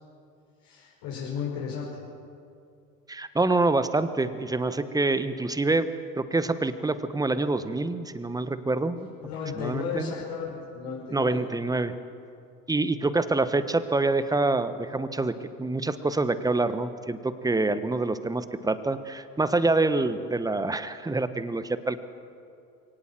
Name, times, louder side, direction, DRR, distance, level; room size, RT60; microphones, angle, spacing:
voice 1, 0.6-2.0 9.2-11.4, left 6 dB, 55° left, -5 dB, 5.6 m, -34 dB
voice 2, 3.1-5.9 6.2-9.1 9.6-10.1 11.1-11.9 12.7-22.1, right 2 dB, 5° right, 12 dB, 1.1 m, -26 dB
23.0 x 18.0 x 7.6 m, 2.5 s
hypercardioid pair, 90°, 49 cm